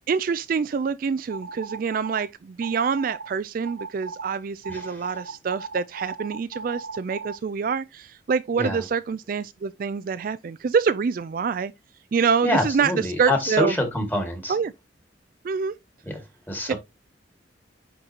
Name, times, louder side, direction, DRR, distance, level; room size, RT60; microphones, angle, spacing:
voice 1, 0.1-11.7 12.1-13.7 14.5-14.7 15.4-15.8 16.7-16.8, right 6 dB, 50° right, 0.3 m, -26 dB
sound 1, 1.3-2.2 2.6-3.3 3.6-4.3 4.6-7.4, right 4 dB, 85° right, 1.0 m, -37 dB
voice 2, 4.7-5.1 8.6-8.8 12.4-14.5 16.1-16.8, left 1 dB, 10° left, 1.9 m, -26 dB
9.8 x 4.0 x 2.8 m
head